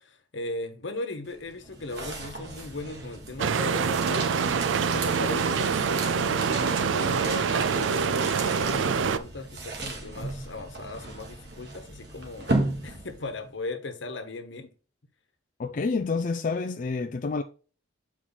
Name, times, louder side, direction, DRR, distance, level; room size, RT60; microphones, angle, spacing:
voice 1, 0.0-4.3 4.9-14.7, left 2 dB, 75° left, 1.1 m, -38 dB
sound 1, 1.2-13.4, right 2 dB, 60° right, 1.7 m, -36 dB
sound 2, 3.4-9.2, right 6 dB, 85° right, 0.4 m, -25 dB
voice 2, 15.6-17.4, left 4 dB, 45° left, 0.4 m, -28 dB
7.5 x 4.6 x 4.0 m
head